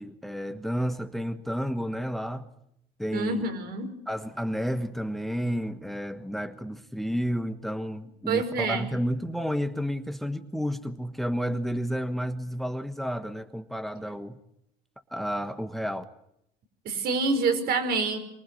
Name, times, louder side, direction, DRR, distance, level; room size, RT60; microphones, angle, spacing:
voice 1, 0.0-2.4 3.0-3.5 4.1-14.4 15.1-16.0, equal, ahead, 9 dB, 1.3 m, -31 dB
voice 2, 3.1-3.9 8.3-8.9 16.8-18.2, right 4 dB, 65° right, 7 dB, 5.0 m, -27 dB
24.5 x 19.0 x 9.5 m, 0.78 s
cardioid pair, 110°, 17 cm